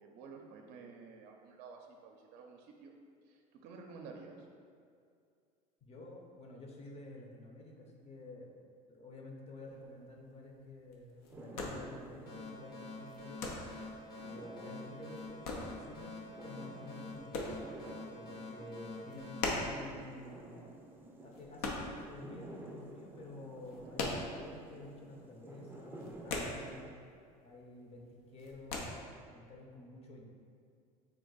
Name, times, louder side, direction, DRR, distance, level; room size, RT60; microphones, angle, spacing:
voice 1, 0.0-2.9 3.3-4.5 23.8-24.0, right 4 dB, 60° right, 2 dB, 0.5 m, -52 dB
voice 2, 5.8-8.5 8.9-13.7 14.2-17.4 18.1-20.7 21.2-26.9 27.4-28.0 28.3-29.0 29.3-30.2, left 2 dB, 35° left, 0 dB, 0.7 m, -50 dB
sound 1, 9.7-22.7 22.9-24.9 25.1-25.3 25.6-27.2 27.4-27.9 28.2-28.8, left 2 dB, 80° left, 0.6 m, -41 dB
sound 2, 11.2-26.8, right 1 dB, 10° right, 0.5 m, -53 dB
sound 3, 12.3-20.6, left 2 dB, 60° left, 1.0 m, -48 dB
3.6 x 2.5 x 3.9 m, 2.3 s
supercardioid pair, 90°, 19 cm